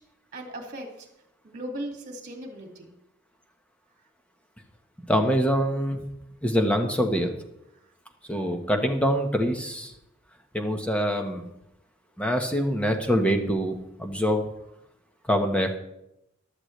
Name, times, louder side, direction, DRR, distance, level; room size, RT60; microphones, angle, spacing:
voice 1, 0.3-1.1 1.4-2.9, right 1 dB, 40° right, 2 dB, 2.1 m, -37 dB
voice 2, 5.1-6.0 6.4-7.3 8.3-9.9 10.5-11.5 12.2-14.4 15.3-15.8, equal, 5° left, 4 dB, 1.1 m, -24 dB
14.5 x 11.5 x 3.2 m, 0.85 s
head